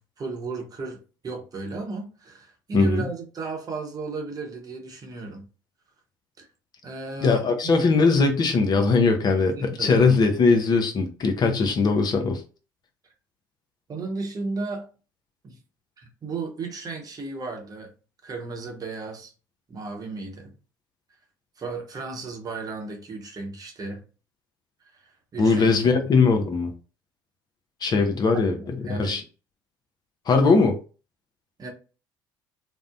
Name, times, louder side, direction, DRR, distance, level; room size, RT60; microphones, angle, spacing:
voice 1, 0.0-5.4 6.4-6.5 6.8-7.9 9.5-10.1 13.9-14.9 15.4-15.6 16.0-17.9 18.2-19.3 19.7-20.5 21.6-24.0 24.8-25.7 28.3-29.2 31.6-31.7, right 3 dB, 35° right, 0.8 m, -34 dB
voice 2, 2.7-3.0 7.2-12.4 25.4-26.7 27.8-29.2 30.3-30.8, left 4 dB, 40° left, 0.5 m, -20 dB
2.5 x 2.0 x 2.5 m
hypercardioid pair, 60°, 11 cm